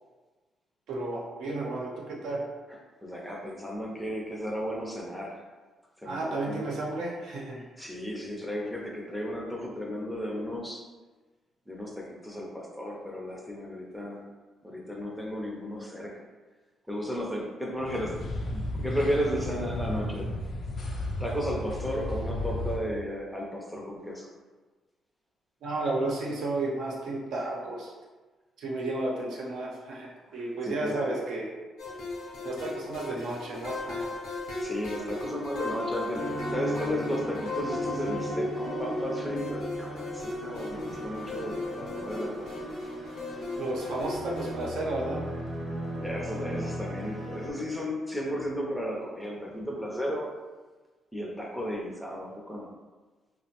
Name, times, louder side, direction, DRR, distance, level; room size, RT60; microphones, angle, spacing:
voice 1, 0.9-2.4 6.0-7.6 25.6-27.9 28.6-31.5 32.4-34.1 43.6-45.2, right 2 dB, 80° right, -3 dB, 0.6 m, -32 dB
voice 2, 3.0-5.4 6.0-6.7 7.5-10.9 11.7-14.2 14.6-16.2 16.9-18.2 18.5-20.3 20.8-20.9 21.2-24.3 30.3-31.1 34.6-42.7 45.9-50.3 51.1-52.7, equal, ahead, -1 dB, 0.5 m, -34 dB
sound 1, 17.8-22.8, left 1 dB, 60° left, 0.4 m, -33 dB
sound 2, 31.8-44.7, left 2 dB, 85° left, 0.7 m, -36 dB
sound 3, 36.1-47.5, right 1 dB, 35° right, 0.8 m, -38 dB
2.8 x 2.0 x 2.8 m, 1.3 s
cardioid pair, 90°, 0 cm